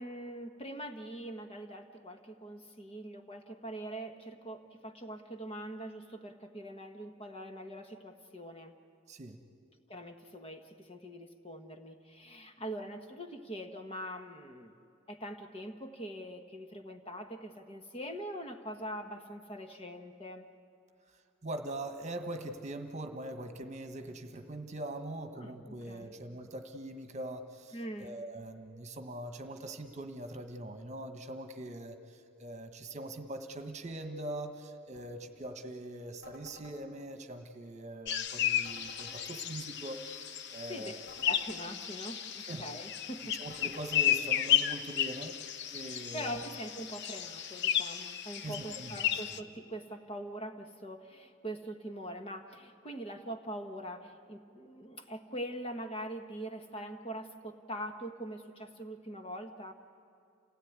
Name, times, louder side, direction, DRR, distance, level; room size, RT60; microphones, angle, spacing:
voice 1, 0.0-8.7 9.9-14.8 15.1-20.5 25.3-26.1 27.7-28.1 40.7-40.9 41.2-43.4 46.1-59.7, equal, 30° left, 5 dB, 1.4 m, -43 dB
voice 2, 21.4-41.0 42.4-42.6 43.4-45.4 45.7-46.5 48.4-49.4, right 1 dB, 35° right, 7 dB, 1.5 m, -42 dB
sound 1, 36.2-36.8 38.6-39.2 41.1-41.6 43.5-44.0, left 2 dB, 80° left, 4.5 m, -53 dB
sound 2, 38.1-49.4, left 11 dB, 60° left, 0.8 m, -33 dB
28.5 x 17.5 x 9.7 m, 2.6 s
head